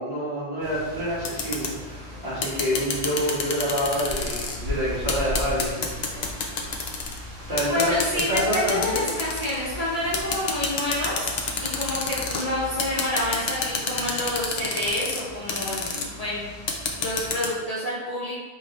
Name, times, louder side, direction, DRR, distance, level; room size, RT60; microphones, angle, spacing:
voice 1, 0.0-1.7 2.2-5.9 7.5-8.0 8.3-9.1, equal, 55° right, -10 dB, 1.7 m, -27 dB
sound 1, 0.6-17.3, left 1 dB, 75° right, 1.5 m, -39 dB
sound 2, 1.2-1.7 2.4-4.6 5.1-7.2 7.6-9.6 10.1-12.4 12.8-15.2 15.5-16.0 16.7-17.5, left 4 dB, 75° left, 0.3 m, -28 dB
sound 3, 3.7-14.9, left 1 dB, 40° right, 1.0 m, -42 dB
voice 2, 7.6-16.5 17.0-18.4, left 1 dB, 35° left, -9 dB, 0.8 m, -28 dB
4.5 x 2.4 x 3.0 m, 1.3 s
omnidirectional pair, 1.3 m